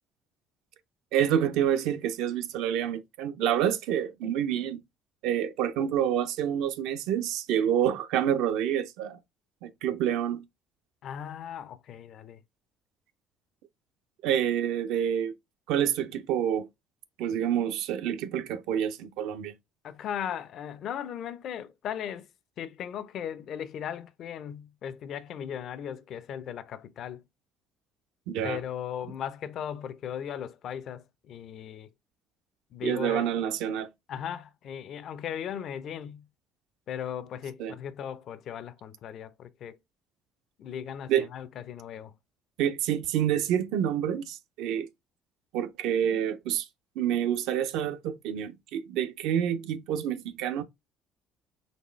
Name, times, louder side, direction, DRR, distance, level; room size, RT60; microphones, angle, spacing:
voice 1, 1.1-4.8 5.2-9.2 9.6-10.4 14.2-15.3 15.7-16.7 17.2-19.5 28.3-28.6 32.8-33.9 37.6-37.7 41.1-41.3 42.6-44.9 45.5-46.7 47.0-50.6, right 10 dB, 80° right, 0.5 m, -28 dB
voice 2, 11.0-12.4 19.8-22.3 22.6-27.2 28.4-31.9 32.7-33.3 34.1-36.3 36.9-39.8 40.6-42.1, left 9 dB, 60° left, 0.5 m, -37 dB
4.2 x 3.2 x 3.1 m
supercardioid pair, 90°, 0 cm